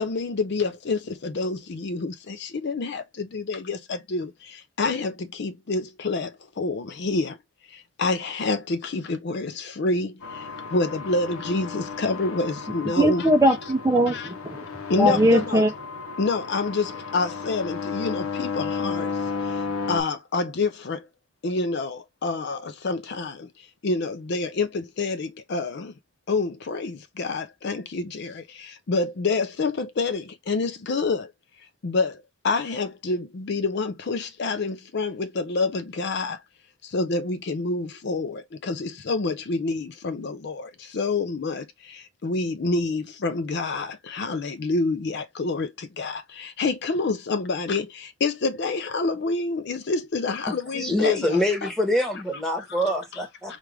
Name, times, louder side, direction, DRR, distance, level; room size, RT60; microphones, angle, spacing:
voice 1, 0.0-7.4 7.7-13.3 14.1-14.3 14.9-15.6 16.2-21.1 21.4-25.9 26.3-31.3 31.8-36.4 36.8-51.7 52.7-52.8 53.1-53.2, left 3 dB, 50° left, 0.5 m, -28 dB
sound 1, 10.2-20.0, left 5 dB, 90° left, 0.8 m, -33 dB
voice 2, 13.0-14.7 15.0-15.7, right 1 dB, 15° right, 0.6 m, -20 dB
voice 3, 50.5-53.6, left 1 dB, ahead, 1.1 m, -25 dB
4.6 x 2.5 x 3.3 m
head